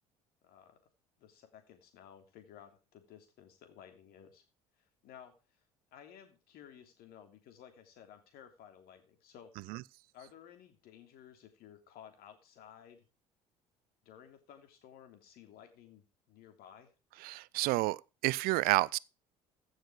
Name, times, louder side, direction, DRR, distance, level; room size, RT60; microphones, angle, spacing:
voice 1, 0.4-0.8 1.2-4.4 4.8-5.6 5.9-9.5 10.1-13.1 14.0-16.9, left 9 dB, 55° left, 3.2 m, -56 dB
voice 2, 17.2-19.0, right 20 dB, 55° right, 0.5 m, -30 dB
15.5 x 6.5 x 4.9 m
figure-of-eight pair, 60°, 18 cm